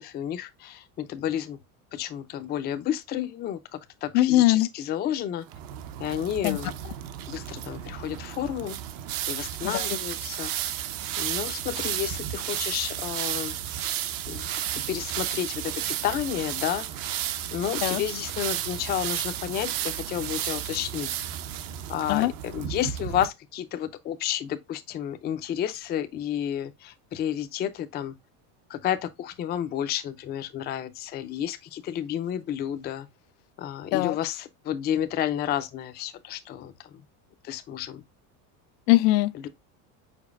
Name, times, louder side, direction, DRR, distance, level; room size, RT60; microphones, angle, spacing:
voice 1, 0.0-1.6 1.9-5.4 6.0-6.9 7.3-8.8 9.3-10.5 11.2-13.5 14.3-14.5 14.7-21.3 21.9-28.2 28.7-33.1 33.6-37.0 37.4-38.0 39.3-39.5, left 10 dB, 25° left, 0.4 m, -31 dB
voice 2, 4.1-4.7 6.4-6.6 9.6-9.9 17.8-18.0 22.1-22.3 33.9-34.2 38.9-39.3, left 17 dB, 85° left, 0.5 m, -21 dB
sound 1, 5.5-23.3, right 11 dB, 50° right, 0.6 m, -33 dB
5.2 x 4.4 x 2.3 m
cardioid pair, 145°, 45 cm